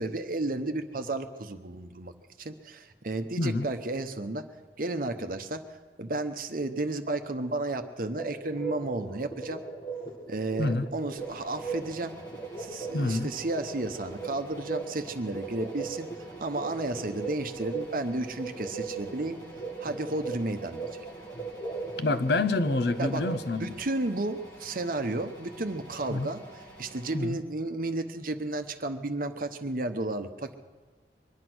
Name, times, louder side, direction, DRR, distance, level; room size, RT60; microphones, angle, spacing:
voice 1, 0.0-2.1 2.4-4.5 4.8-9.6 10.3-12.2 12.6-16.1 16.4-19.4 19.8-20.8 23.0-23.3 23.6-30.5, right 2 dB, 50° right, 8 dB, 1.0 m, -33 dB
sound 1, 8.1-23.5, right 4 dB, 25° left, 2.0 m, -39 dB
sound 2, 11.2-27.2, right 2 dB, 10° left, 7.1 m, -50 dB
voice 2, 12.9-13.3 22.0-23.7 26.1-26.3 27.1-27.4, left 2 dB, 65° left, 12 dB, 0.7 m, -27 dB
23.5 x 9.9 x 6.2 m, 1.3 s
head